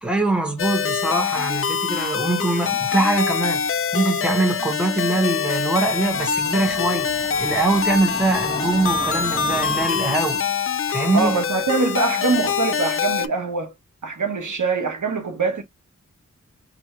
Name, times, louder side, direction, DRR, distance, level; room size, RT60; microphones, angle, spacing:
voice 1, 0.0-3.6 3.9-10.4 10.9-11.4, right 2 dB, 5° right, 1.3 m, -23 dB
sound 1, 0.6-13.3, left 6 dB, 45° left, 0.4 m, -24 dB
Train, 5.6-10.5, equal, 15° left, 1.1 m, -35 dB
voice 2, 11.1-13.7 14.0-15.6, right 4 dB, 75° right, 1.2 m, -23 dB
3.4 x 2.6 x 4.2 m
wide cardioid pair, 75°, 30 cm